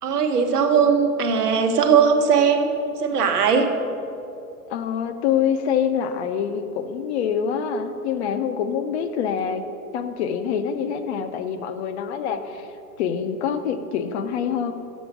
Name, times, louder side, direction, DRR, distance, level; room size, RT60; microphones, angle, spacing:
voice 1, 0.0-3.7, right 6 dB, 85° right, 5 dB, 1.1 m, -19 dB
voice 2, 4.7-9.6 9.9-12.7 13.0-14.7, left 7 dB, 45° left, 9 dB, 0.6 m, -25 dB
7.2 x 6.0 x 5.9 m, 2.6 s
hypercardioid pair, 125°, 45 cm